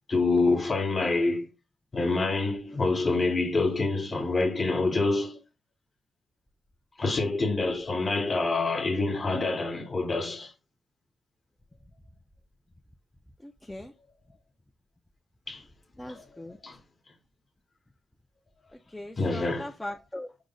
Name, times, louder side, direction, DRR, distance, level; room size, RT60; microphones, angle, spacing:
voice 1, 0.1-1.5 1.9-5.4 7.0-10.5 15.5-15.6 16.1-16.8 19.2-19.7, left 3 dB, 35° left, 0.9 m, -27 dB
voice 2, 13.4-13.9 16.0-16.6 18.7-20.3, left 1 dB, 10° left, 0.4 m, -40 dB
4.8 x 2.1 x 3.8 m
cardioid pair, 110°, 0 cm